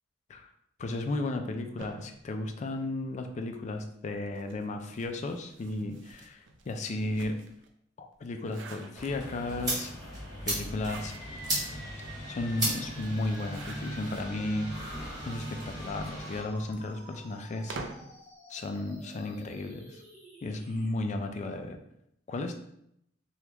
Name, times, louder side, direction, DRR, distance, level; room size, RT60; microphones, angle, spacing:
voice 1, 0.8-7.4 8.0-9.9 10.4-11.1 12.3-14.7 15.3-17.8 18.5-20.0 20.4-21.8 22.3-22.6, left 2 dB, 40° left, 6 dB, 0.3 m, -34 dB
sound 1, 1.8-3.4 4.2-7.7 8.1-9.5 10.5-11.5 12.0-12.1 12.3-12.4 13.3-14.2 15.0-18.2, right 3 dB, 80° right, 0.4 m, -48 dB
sound 2, 8.9-16.4, right 1 dB, 20° right, 1.2 m, -36 dB
sound 3, 10.9-20.9, equal, 40° right, 1.3 m, -50 dB
2.9 x 2.3 x 3.3 m, 0.76 s
head